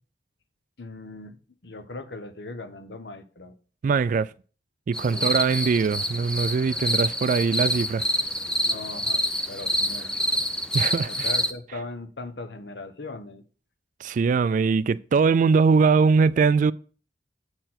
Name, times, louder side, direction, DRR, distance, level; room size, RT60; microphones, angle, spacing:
voice 1, 0.8-1.4 1.6-3.6 5.1-5.3 8.6-10.4 11.1-13.4, left 2 dB, 70° left, 0.9 m, -39 dB
voice 2, 3.8-4.3 4.9-8.0 10.7-11.3 14.0-16.7, right 5 dB, 45° right, 0.3 m, -21 dB
sound 1, 4.9-11.5, equal, 5° left, 0.6 m, -27 dB
7.9 x 4.4 x 5.8 m
head